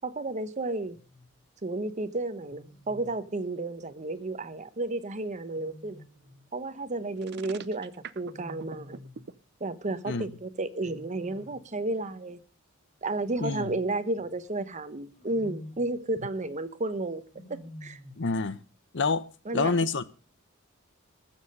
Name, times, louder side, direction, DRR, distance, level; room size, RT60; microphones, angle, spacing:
voice 1, 0.0-1.0 1.6-6.0 6.5-9.0 9.6-12.4 13.0-17.2 17.5-18.0 19.5-19.7, right 2 dB, 35° right, 1.0 m, -32 dB
Wild animals, 0.9-1.3 2.5-3.2 5.5-6.5 8.2-9.3 10.8-11.8 13.3-14.4 15.1-16.0 17.3-18.3, left 1 dB, 35° left, 4.1 m, -48 dB
sound 1, 7.2-9.3, right 6 dB, 55° right, 0.7 m, -43 dB
voice 2, 13.4-13.7 18.2-18.6 18.9-20.0, left 4 dB, 60° left, 0.8 m, -28 dB
20.5 x 7.3 x 5.4 m
head